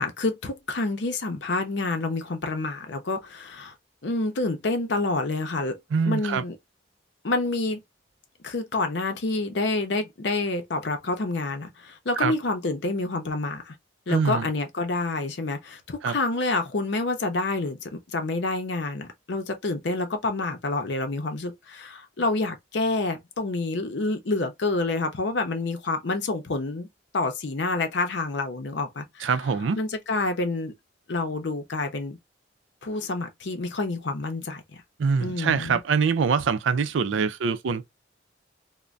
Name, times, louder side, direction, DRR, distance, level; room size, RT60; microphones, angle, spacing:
voice 1, 0.0-3.7 4.0-5.8 6.1-6.6 7.2-7.8 8.4-13.7 14.1-26.9 27.1-29.3 29.7-30.7 31.1-32.2 32.8-34.8 35.2-35.8, left 2 dB, 65° left, 0.6 m, -28 dB
voice 2, 5.9-6.4 12.2-12.3 14.1-14.5 16.0-16.2 29.2-29.8 35.0-37.9, right 5 dB, 85° right, 0.4 m, -24 dB
2.5 x 2.1 x 3.1 m
head